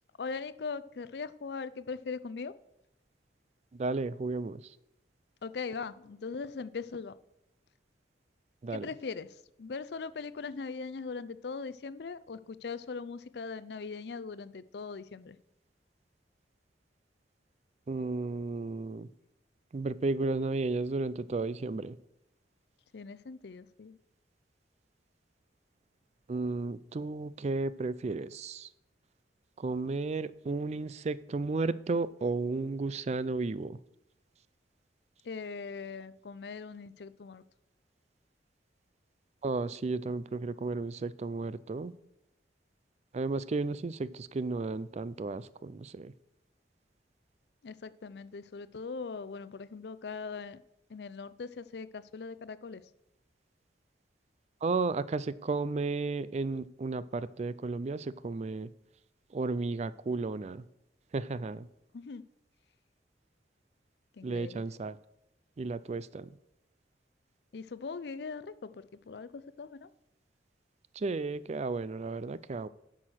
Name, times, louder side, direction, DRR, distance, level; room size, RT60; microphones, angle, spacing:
voice 1, 0.2-2.5 5.4-7.1 8.7-15.4 22.9-24.0 35.2-37.4 47.6-50.6 50.9-52.9 61.9-62.2 64.1-64.6 67.5-69.9, left 4 dB, 65° left, 16 dB, 0.5 m, -40 dB
voice 2, 3.7-4.7 8.6-8.9 17.9-19.1 19.7-22.0 26.3-28.7 29.6-33.8 39.4-41.9 43.1-46.1 54.6-58.7 59.3-60.7 61.1-61.7 64.2-65.0 65.6-66.3 70.9-72.7, right 3 dB, 40° right, 17 dB, 0.4 m, -33 dB
9.8 x 6.3 x 6.3 m, 0.83 s
head